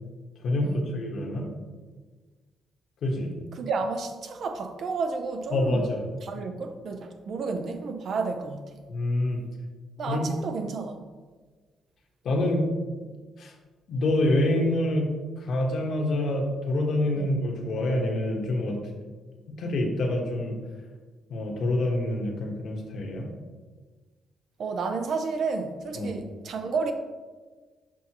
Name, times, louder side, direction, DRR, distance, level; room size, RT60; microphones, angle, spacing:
voice 1, 0.4-1.5 3.0-3.3 5.5-6.1 8.9-9.4 10.1-10.3 12.2-12.7 13.4-13.5 13.9-15.1 15.5-18.8 19.6-20.5 21.3-23.2 25.9-26.2, left 1 dB, 65° left, 1.2 m, -26 dB
voice 2, 3.5-5.9 6.2-8.8 10.0-11.0 17.2-17.3 24.6-26.9, right 4 dB, 60° right, 0.6 m, -31 dB
6.2 x 5.3 x 2.9 m
cardioid pair, 90°, 0 cm